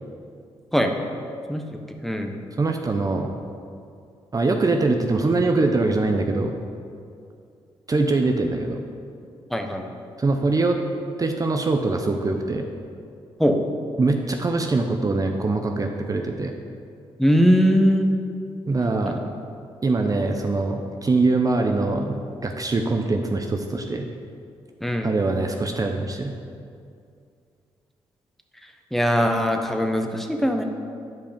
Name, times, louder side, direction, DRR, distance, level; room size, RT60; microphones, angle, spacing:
voice 1, 1.5-2.3 9.5-9.8 13.4-13.6 17.2-18.2 19.0-19.2 24.8-25.1 28.9-30.6, equal, ahead, 4 dB, 1.0 m, -21 dB
voice 2, 2.6-3.3 4.3-6.5 7.9-8.8 10.2-10.8 11.2-12.7 14.0-16.5 18.7-19.2 19.8-24.1 25.0-26.4, right 3 dB, 35° right, 4 dB, 0.7 m, -23 dB
9.4 x 5.1 x 5.2 m, 2.4 s
supercardioid pair, 55°, 11 cm